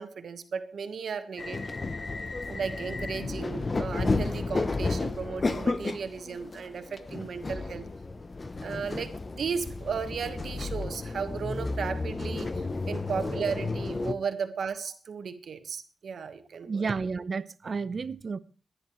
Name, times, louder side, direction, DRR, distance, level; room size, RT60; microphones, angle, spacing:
voice 1, 0.0-1.7 2.5-7.9 8.6-16.9, right 6 dB, 70° right, 1.3 m, -35 dB
sound 1, 1.4-14.1, left 3 dB, 30° left, 0.7 m, -32 dB
voice 2, 16.6-18.4, right 4 dB, 45° right, 0.7 m, -31 dB
25.5 x 10.5 x 3.2 m
wide cardioid pair, 115°, 0 cm